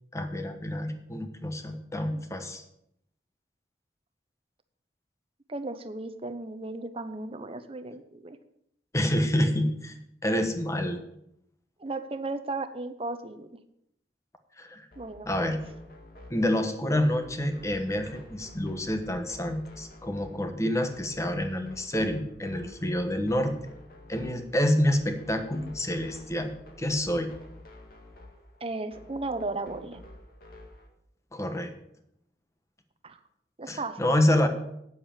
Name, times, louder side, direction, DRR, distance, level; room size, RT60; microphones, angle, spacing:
voice 1, 0.1-2.6 8.9-9.9 10.2-11.0 14.6-14.8 15.2-15.6 16.3-23.5 24.1-26.5 26.8-27.3 31.3-31.7 33.7-34.5, left 1 dB, 15° left, 7 dB, 1.2 m, -27 dB
voice 2, 5.5-8.4 11.8-13.5 15.0-15.5 28.6-30.0 33.0-33.2 33.6-34.0, right 2 dB, 35° right, 10 dB, 0.9 m, -35 dB
sound 1, 14.9-30.9, left 1 dB, 55° left, 2.0 m, -50 dB
9.1 x 7.9 x 7.4 m, 0.76 s
head